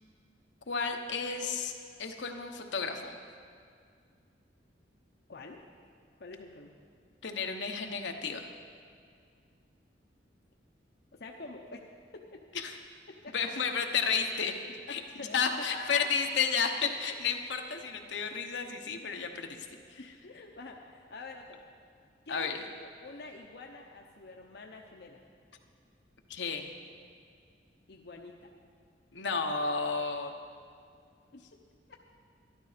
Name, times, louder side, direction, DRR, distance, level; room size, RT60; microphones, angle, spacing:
voice 1, 0.7-1.7 2.0-3.2 7.2-8.5 12.5-12.7 13.3-14.6 14.9-20.0 22.3-22.6 26.3-26.7 29.1-30.3, left 5 dB, 85° left, 4 dB, 1.0 m, -32 dB
voice 2, 5.3-5.6 6.2-6.7 11.1-12.4 13.1-13.5 14.9-16.2 20.0-21.6 22.3-25.2 27.9-28.5 31.5-31.6 31.9-32.0, left 3 dB, 65° left, 1 dB, 0.8 m, -46 dB
12.0 x 12.0 x 5.1 m, 2.2 s
head